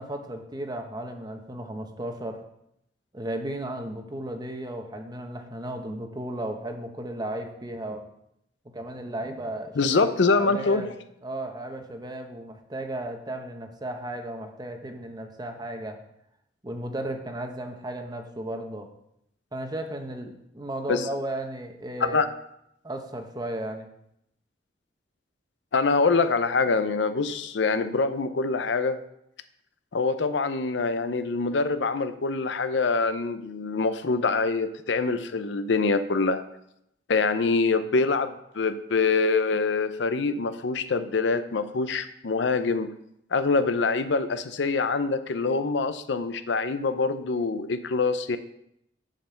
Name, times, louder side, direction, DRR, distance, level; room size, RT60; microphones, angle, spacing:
voice 1, 0.0-2.4 3.1-8.0 8.7-11.0 11.2-16.0 16.6-18.9 19.5-22.3 22.8-23.9, right 1 dB, 25° right, 5 dB, 1.0 m, -35 dB
voice 2, 9.8-10.9 20.9-21.1 22.0-22.3 25.7-29.0 29.9-36.4 37.1-42.9 43.3-48.4, left 4 dB, 75° left, 11 dB, 0.6 m, -25 dB
7.4 x 5.5 x 6.9 m, 0.78 s
head